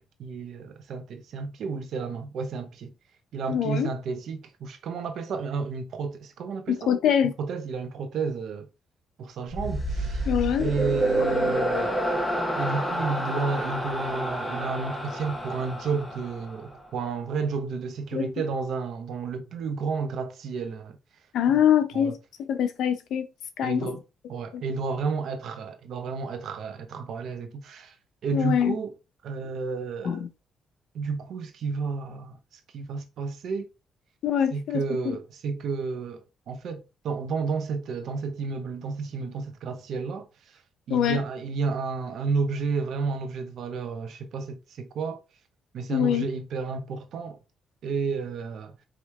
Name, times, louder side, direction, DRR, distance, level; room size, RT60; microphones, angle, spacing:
voice 1, 0.0-2.9 3.3-6.9 7.2-8.7 9.2-10.3 10.6-12.0 12.6-21.0 21.9-22.1 23.6-24.0 24.3-27.9 28.2-28.9 29.2-30.2 30.9-32.4 32.7-33.7 34.5-40.6 40.9-45.2 45.7-47.4 47.8-48.7, right 4 dB, 70° right, 0.9 m, -31 dB
voice 2, 3.5-3.9 6.7-7.3 10.3-10.7 18.1-18.3 21.3-22.1 22.5-23.3 23.6-24.0 24.5-24.6 28.3-28.8 30.0-30.3 34.2-35.2 40.9-41.2 45.9-46.3, left 9 dB, 75° left, 0.7 m, -24 dB
sound 1, 9.5-16.9, right 1 dB, 10° left, 1.5 m, -29 dB
5.0 x 3.0 x 3.2 m
cardioid pair, 90°, 0 cm